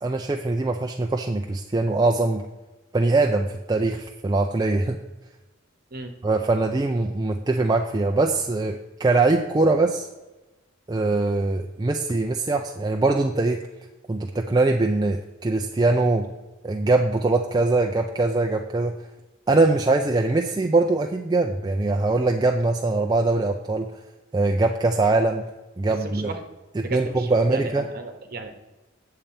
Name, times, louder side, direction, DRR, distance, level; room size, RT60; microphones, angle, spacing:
voice 1, 0.0-2.5 2.9-5.0 6.2-10.1 10.9-13.6 14.1-16.3 16.6-18.9 19.5-23.9 24.3-25.4 25.8-26.3 26.8-27.9, right 2 dB, 20° right, 2 dB, 0.4 m, -22 dB
voice 2, 26.0-26.4 26.8-28.5, right 3 dB, 45° right, 5 dB, 1.1 m, -34 dB
8.9 x 6.7 x 4.3 m, 1.1 s
head